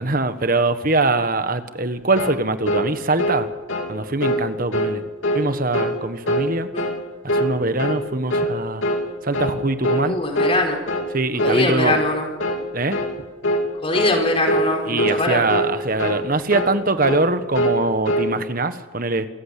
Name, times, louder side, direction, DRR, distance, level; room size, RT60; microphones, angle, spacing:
voice 1, 0.0-3.5 3.9-5.0 5.3-6.7 7.2-8.8 9.2-10.2 11.1-11.9 12.7-13.0 14.8-19.3, right 2 dB, 45° right, 10 dB, 1.3 m, -22 dB
sound 1, 2.2-2.4 2.7-2.9 3.2-3.4 3.7-3.9 4.2-4.4 4.7-4.9 5.2-5.5 5.7-6.0 6.3-6.5 6.8-7.0 7.3-7.5 7.8-8.0 8.3-8.5 8.8-9.0 9.3-9.6 9.8-10.1 10.3-10.6 10.9-11.1 11.4-11.6 11.9-12.1 12.4-12.6 12.9-13.1 13.4-13.7 13.9-14.2 14.5-14.7 15.0-15.2 15.5-15.7 16.0-16.2 16.5-16.8 17.0-17.2 17.5-17.8 18.0-18.3, equal, 75° left, 3.2 m, -22 dB
voice 2, 10.0-10.8 11.4-12.3 13.8-15.4, left 1 dB, 30° left, 2 dB, 4.3 m, -22 dB
27.5 x 14.5 x 8.3 m, 1.2 s
head